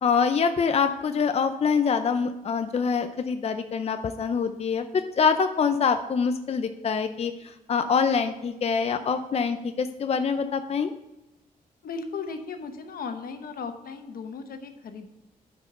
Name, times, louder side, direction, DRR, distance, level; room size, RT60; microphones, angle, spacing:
voice 1, 0.0-4.9 5.2-10.9, left 6 dB, 45° left, 8 dB, 0.5 m, -25 dB
voice 2, 11.8-15.1, left 5 dB, 80° left, 7 dB, 1.0 m, -36 dB
9.7 x 5.2 x 5.6 m, 0.98 s
cardioid pair, 100°, 15 cm